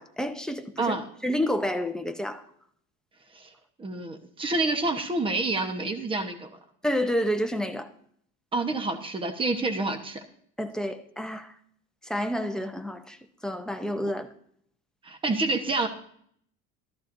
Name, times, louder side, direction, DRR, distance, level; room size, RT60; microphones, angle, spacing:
voice 1, 0.0-1.0 1.2-2.4 6.8-7.9 10.6-11.5 12.0-13.2 13.4-14.3, equal, ahead, 0.7 m, -29 dB
voice 2, 3.8-6.5 8.5-10.2 15.0-15.9, right 2 dB, 15° right, 1.1 m, -28 dB
14.5 x 13.5 x 2.6 m
cardioid pair, 145°, 32 cm